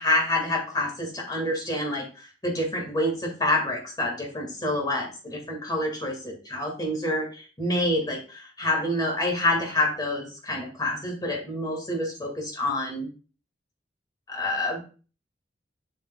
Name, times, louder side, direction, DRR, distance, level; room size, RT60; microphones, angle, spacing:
voice 1, 0.0-13.1 14.3-14.8, left 1 dB, 20° left, 0 dB, 2.0 m, -27 dB
7.3 x 6.4 x 2.3 m, 0.36 s
head